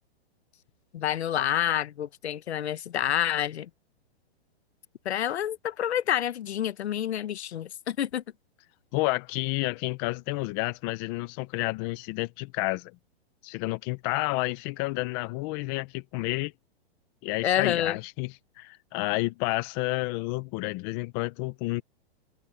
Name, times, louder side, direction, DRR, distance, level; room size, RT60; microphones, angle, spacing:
voice 1, 0.9-3.7 5.0-8.2 17.4-18.0, left 10 dB, 85° left, 1.1 m, -28 dB
voice 2, 8.9-12.9 13.4-16.5 17.2-21.8, left 22 dB, 20° left, 0.5 m, -30 dB
hypercardioid pair, 155°, 32 cm